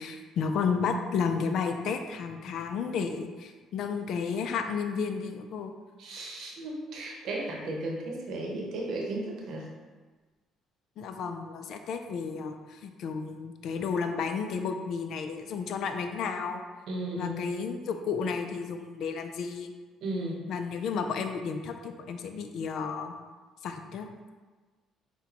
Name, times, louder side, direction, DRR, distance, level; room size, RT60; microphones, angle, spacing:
voice 1, 0.0-5.7 11.0-16.6 17.2-19.7 20.5-23.1 23.6-24.3, left 5 dB, 70° left, 6 dB, 0.4 m, -32 dB
voice 2, 6.0-9.7 16.9-17.5 20.0-20.5, right 1 dB, 70° right, -1 dB, 0.8 m, -35 dB
5.8 x 2.2 x 2.9 m, 1.3 s
supercardioid pair, 75°, 0 cm